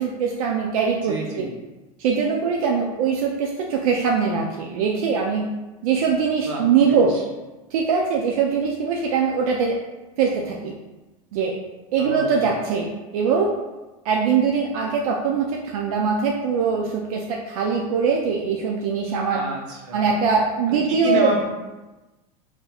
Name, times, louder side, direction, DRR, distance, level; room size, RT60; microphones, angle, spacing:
voice 1, 0.0-1.5 2.0-5.5 5.8-7.1 7.7-9.7 10.2-10.7 11.3-11.5 11.9-12.9 13.1-13.5 14.0-15.5 15.7-19.4 19.9-21.3, right 5 dB, 85° right, 0 dB, 0.5 m, -22 dB
voice 2, 1.0-1.5 6.4-7.2 12.0-12.5 19.3-20.1 20.7-21.5, right 1 dB, 60° right, -1 dB, 0.9 m, -29 dB
4.1 x 2.7 x 2.3 m, 1.1 s
supercardioid pair, 170°, 18 cm